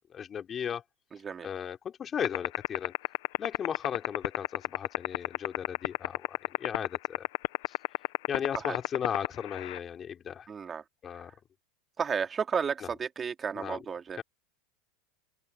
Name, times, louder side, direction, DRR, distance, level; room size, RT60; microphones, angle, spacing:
voice 1, 0.1-0.8 1.4-2.9 3.4-7.2 7.7-7.8 8.3-10.5 11.0-11.3 12.8-12.9 13.6-13.8 14.2-14.3, left 8 dB, 30° left, 4.0 m, -36 dB
sound 1, 2.2-9.8, left 21 dB, 65° left, 1.1 m, -27 dB
voice 2, 10.5-10.8 12.0-14.2, right 6 dB, 25° right, 2.9 m, -32 dB
hypercardioid pair, 95°, 0 cm